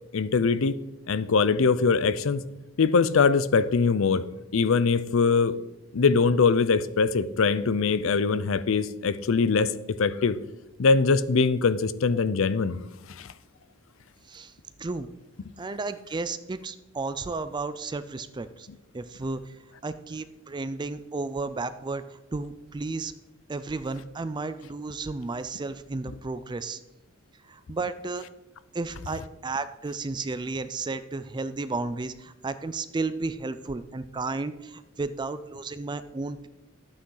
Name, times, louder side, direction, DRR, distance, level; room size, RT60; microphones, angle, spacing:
voice 1, 0.1-0.8 1.1-2.4 2.8-4.2 4.5-5.6 5.9-9.7 10.0-10.4 10.8-12.8 13.1-13.3, left 4 dB, 65° left, 15 dB, 0.5 m, -22 dB
voice 2, 15.6-18.7 18.9-19.4 19.8-22.0 22.3-23.1 23.5-26.8 27.5-28.3 28.7-36.5, right 3 dB, 20° right, 12 dB, 0.4 m, -33 dB
12.5 x 8.6 x 3.9 m, 0.97 s
head